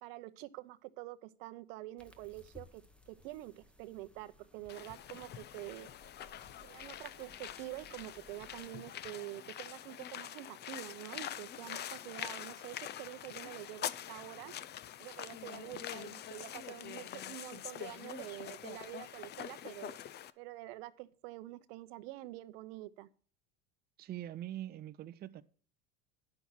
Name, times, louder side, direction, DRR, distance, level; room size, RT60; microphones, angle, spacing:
voice 1, 0.0-5.9 6.6-14.5 15.0-20.0 20.4-23.1, right 17 dB, 70° right, 0.8 m, -47 dB
sound 1, 2.0-8.7, left 2 dB, 5° left, 1.0 m, -61 dB
sound 2, 4.7-20.3, left 11 dB, 35° left, 0.5 m, -45 dB
voice 2, 24.0-25.4, right 12 dB, 30° right, 0.6 m, -43 dB
9.9 x 6.0 x 7.2 m
supercardioid pair, 100°, 31 cm